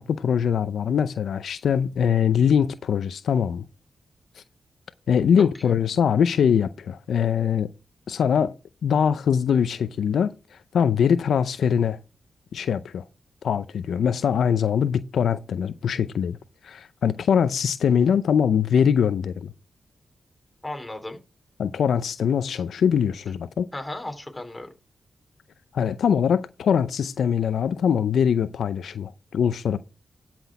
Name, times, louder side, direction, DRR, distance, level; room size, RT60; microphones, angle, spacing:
voice 1, 0.0-3.6 5.1-7.7 8.1-8.5 8.8-10.3 10.7-12.0 12.5-13.0 13.4-16.4 16.6-19.5 21.6-23.7 25.7-29.8, left 7 dB, 85° left, 0.5 m, -22 dB
voice 2, 5.4-5.8 20.6-21.2 23.7-24.7, left 1 dB, 15° left, 3.4 m, -35 dB
12.0 x 6.1 x 4.8 m
cardioid pair, 55°, 0 cm